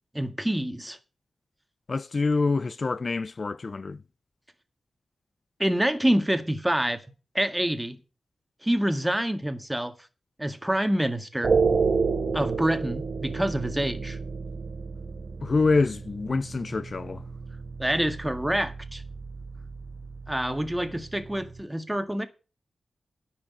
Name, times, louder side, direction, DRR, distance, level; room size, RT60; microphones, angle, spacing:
voice 1, 0.1-1.0 5.6-7.0 7.4-8.0 8.6-9.9 10.4-11.5 12.3-14.2 17.8-19.0 20.3-22.3, right 1 dB, 10° right, 1.8 m, -27 dB
voice 2, 1.9-4.0 15.4-17.2, left 3 dB, 50° left, 0.5 m, -26 dB
sound 1, 11.4-21.6, right 4 dB, 60° right, 1.5 m, -31 dB
10.0 x 6.2 x 8.4 m
cardioid pair, 60°, 0 cm